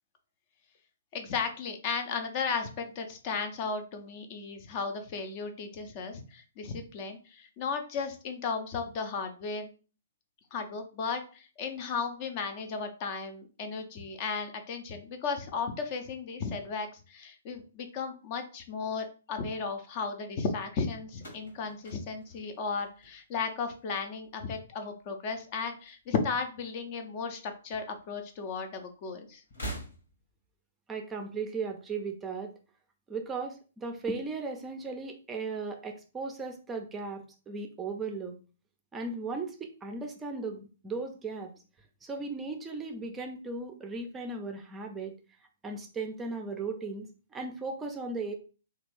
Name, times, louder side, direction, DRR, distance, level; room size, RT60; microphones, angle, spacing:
voice 1, 1.1-9.7 10.5-29.4, left 5 dB, 35° left, 6 dB, 0.5 m, -35 dB
sound 1, 21.1-23.5 23.8-24.4 25.4-26.4 26.7-26.8 27.9-28.0 29.4-30.4, right 1 dB, 65° left, 1.2 m, -44 dB
voice 2, 30.9-32.5 33.1-38.4 38.9-41.5 42.0-45.2 45.6-48.3, right 3 dB, 15° right, 4 dB, 0.5 m, -37 dB
3.3 x 2.3 x 3.1 m, 0.36 s
figure-of-eight pair, 120°, 0 cm